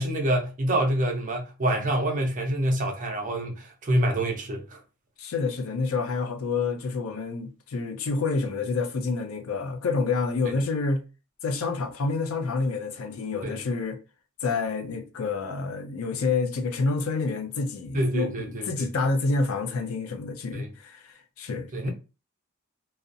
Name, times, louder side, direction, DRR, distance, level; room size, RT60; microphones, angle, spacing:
voice 1, 0.0-4.8 13.4-13.6 17.9-18.9 20.5-20.7 21.7-21.9, right 1 dB, 35° right, 0.6 m, -26 dB
voice 2, 5.2-11.0 11.4-14.0 14.4-21.9, left 4 dB, 75° left, 0.5 m, -28 dB
2.4 x 2.0 x 2.6 m
head